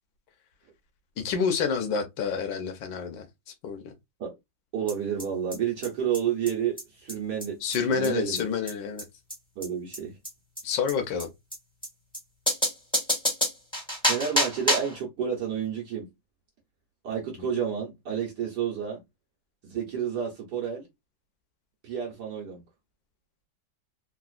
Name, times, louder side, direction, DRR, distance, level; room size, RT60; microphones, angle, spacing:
voice 1, 1.2-3.3 3.6-3.8 7.6-9.0 10.6-11.3, left 6 dB, 85° left, 1.5 m, -28 dB
voice 2, 4.7-7.6 7.9-8.4 9.6-10.2 14.0-16.1 17.0-19.0 19.6-20.9 21.8-22.6, right 8 dB, 65° right, 1.4 m, -30 dB
sound 1, 4.9-5.0 5.2-5.3 5.5-5.6 5.8-5.9 6.1-6.2 6.4-6.5 6.8-6.9 7.1-7.2 7.4-7.5 7.7-7.8 8.0-8.1 8.3-8.4 8.7-8.8 9.0-9.1 9.3-9.4 9.6-9.7 9.9-10.0 10.2-10.3 10.6-10.7 10.9-11.0 11.2-11.3 11.5-11.6 11.8-11.9 12.1-12.2 12.5-15.0, equal, 5° left, 1.2 m, -27 dB
3.9 x 2.4 x 2.4 m
omnidirectional pair, 2.0 m